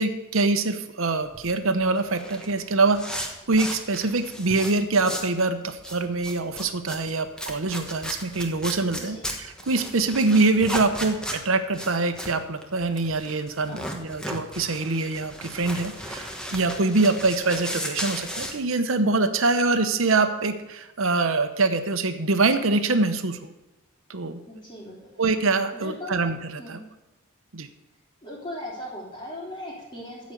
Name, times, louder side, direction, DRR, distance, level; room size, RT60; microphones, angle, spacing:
voice 1, 0.0-23.5 24.1-24.4 25.2-26.4 26.7-26.8 27.5-27.7, right 3 dB, 70° right, 8 dB, 0.9 m, -24 dB
sound 1, 1.1-5.4 5.7-18.5, equal, 5° left, 1.2 m, -35 dB
voice 2, 9.0-9.3 13.7-13.9 24.5-25.0 25.7-26.2 26.6-26.8 28.2-30.3, left 1 dB, 20° left, -4 dB, 3.9 m, -38 dB
14.5 x 5.2 x 8.2 m, 1.0 s
head